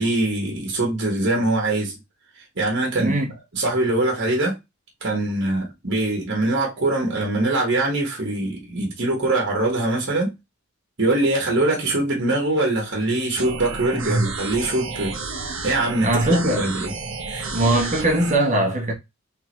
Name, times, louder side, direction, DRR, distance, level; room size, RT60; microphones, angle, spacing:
voice 1, 0.0-2.0 2.6-3.1 3.5-4.6 5.0-10.3 11.0-15.1 15.6-16.9 17.3-17.5, right 2 dB, 55° right, 1.5 m, -23 dB
voice 2, 3.0-3.3 14.0-14.2 16.0-16.6 17.5-18.9, right 1 dB, 35° right, 1.3 m, -20 dB
sound 1, 13.4-18.4, right 4 dB, 70° right, 1.0 m, -31 dB
3.8 x 3.6 x 3.0 m
head